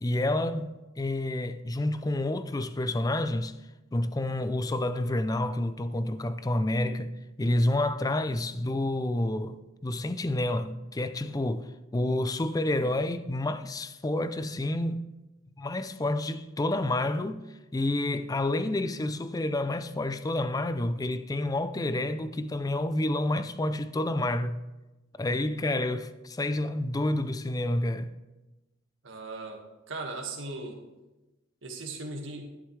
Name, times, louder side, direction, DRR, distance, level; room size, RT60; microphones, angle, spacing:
voice 1, 0.0-3.5 3.9-7.1 7.4-15.0 15.6-17.4 17.7-24.6 25.2-28.1, left 1 dB, 20° left, 0.4 m, -29 dB
voice 2, 29.0-29.6 29.9-30.8 31.6-32.4, right 3 dB, 70° right, 1.7 m, -37 dB
11.0 x 11.0 x 3.2 m
head